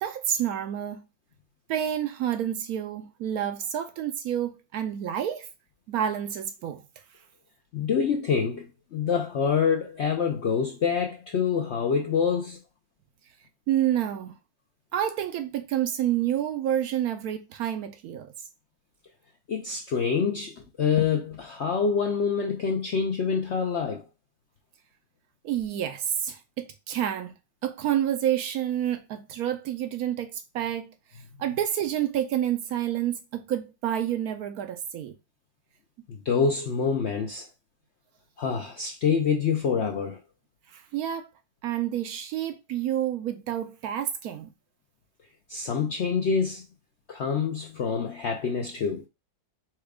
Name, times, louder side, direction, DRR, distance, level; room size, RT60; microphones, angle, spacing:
voice 1, 0.0-1.0 1.7-5.5 5.9-6.8 13.7-14.3 14.9-18.3 25.4-27.3 27.6-30.9 31.4-35.1 40.7-41.3 41.6-44.5, right 10 dB, 70° right, 1.0 m, -29 dB
voice 2, 7.7-12.6 19.5-24.0 36.1-37.5 38.4-40.2 45.5-46.6 47.1-49.1, left 6 dB, 70° left, 0.6 m, -26 dB
4.4 x 2.3 x 4.7 m
omnidirectional pair, 1.8 m